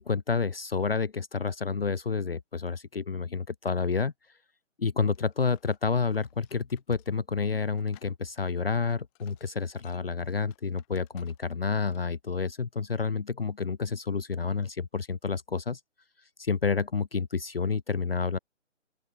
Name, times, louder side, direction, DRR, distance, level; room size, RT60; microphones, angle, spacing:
voice 1, 0.0-4.1 4.8-15.8 16.4-18.4, left 5 dB, 50° left, 0.7 m, -29 dB
sound 1, 5.1-11.6 11.9-12.2, left 40 dB or more, 10° left, 3.6 m, -63 dB
open air
hypercardioid pair, 175°, 38 cm